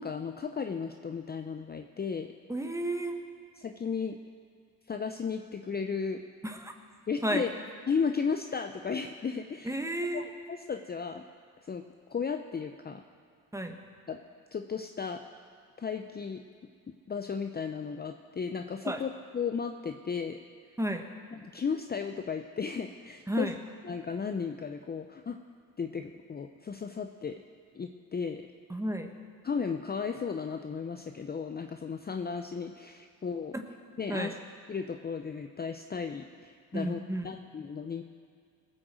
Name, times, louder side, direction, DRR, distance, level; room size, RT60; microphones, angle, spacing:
voice 1, 0.0-2.3 3.6-4.2 4.9-6.2 7.1-7.5 7.9-9.7 10.1-11.2 11.6-11.8 12.1-13.0 14.1-14.2 14.5-15.2 15.8-16.4 17.1-20.4 21.4-23.5 23.8-25.4 25.8-27.4 27.7-28.5 29.4-33.5 34.0-34.3 34.7-38.0, left 5 dB, 25° left, 6 dB, 0.7 m, -34 dB
voice 2, 2.5-3.2 6.4-6.7 7.2-7.5 9.6-10.3 13.5-13.8 18.8-19.0 20.8-21.1 23.3-23.6 28.7-29.1 34.1-34.3 36.7-37.3, right 1 dB, 10° right, 5 dB, 1.5 m, -32 dB
19.0 x 6.5 x 7.6 m, 2.2 s
supercardioid pair, 65°, 39 cm